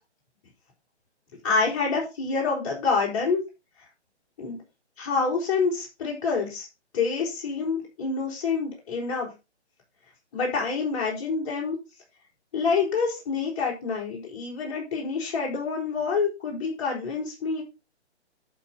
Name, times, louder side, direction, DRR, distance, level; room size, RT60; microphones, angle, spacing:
voice 1, 1.4-3.4 4.4-4.6 5.0-6.7 6.9-9.3 10.3-11.8 12.5-17.6, left 4 dB, 30° left, -3 dB, 4.4 m, -27 dB
11.5 x 4.6 x 5.3 m, 0.27 s
hypercardioid pair, 160°, 34 cm